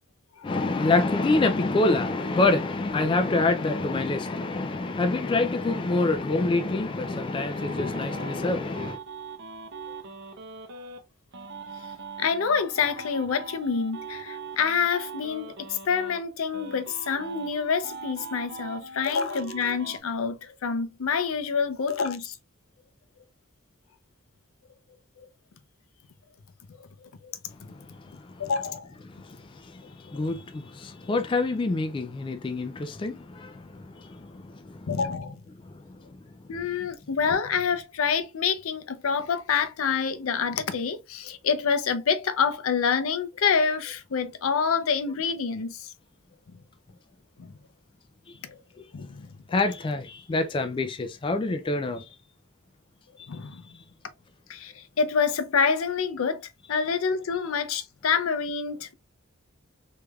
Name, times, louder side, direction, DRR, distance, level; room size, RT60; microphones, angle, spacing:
voice 1, 0.4-9.0 27.6-28.4 29.0-34.9 35.6-36.2 48.3-48.4 48.8-48.9 49.5-52.1, left 2 dB, 25° left, 0.3 m, -27 dB
sound 1, 6.6-11.0 11.3-16.2 16.5-20.0, right 4 dB, 55° right, 0.7 m, -41 dB
voice 2, 12.2-22.4 25.2-25.3 27.0-27.3 28.4-28.9 30.1-30.2 34.9-35.4 36.5-45.9 47.4-47.5 48.4-48.6 48.9-49.3 53.3-53.6 54.5-56.4 56.7-58.9, left 6 dB, 75° left, 0.5 m, -27 dB
3.3 x 3.2 x 2.3 m
head